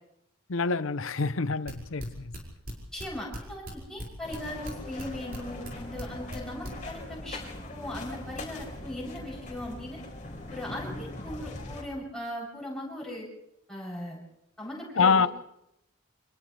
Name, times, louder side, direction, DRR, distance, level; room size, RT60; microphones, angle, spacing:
voice 1, 0.5-2.4 15.0-15.3, left 5 dB, 70° left, 0.7 m, -26 dB
sound 1, 1.7-3.4 3.6-5.4 5.6-6.7, equal, 40° right, 5.6 m, -38 dB
voice 2, 2.9-7.4 7.7-10.0 10.5-13.3 13.7-14.2 14.6-15.2, left 1 dB, ahead, 7.7 m, -38 dB
sound 2, 4.2-11.8, left 1 dB, 35° left, 4.2 m, -41 dB
29.5 x 27.0 x 3.4 m
head